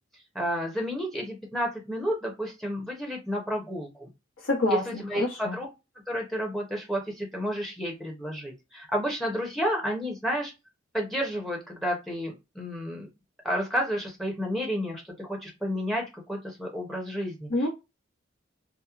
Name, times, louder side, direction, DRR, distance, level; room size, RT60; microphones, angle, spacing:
voice 1, 0.3-4.1 4.7-5.7 6.1-10.5 10.9-13.1 13.4-17.5, equal, ahead, 0.6 m, -31 dB
voice 2, 4.4-5.6 17.5-17.7, left 2 dB, 85° left, 0.9 m, -27 dB
2.8 x 2.0 x 2.3 m
head